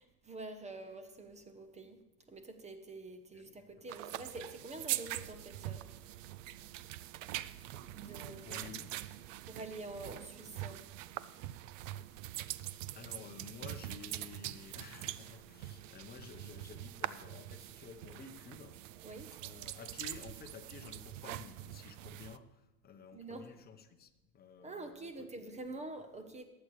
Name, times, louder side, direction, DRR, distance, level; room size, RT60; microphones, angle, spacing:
voice 1, 0.0-2.0 2.3-5.9 7.7-8.6 9.5-10.8 19.0-19.3 23.1-23.5 24.6-26.4, right 2 dB, 15° right, 1.0 m, -47 dB
voice 2, 3.3-3.9 8.2-8.9 12.9-19.2 19.4-25.7, left 6 dB, 20° left, 1.0 m, -52 dB
sound 1, 3.9-22.4, right 14 dB, 55° right, 0.6 m, -44 dB
22.5 x 8.2 x 3.3 m
hypercardioid pair, 110°, 45 cm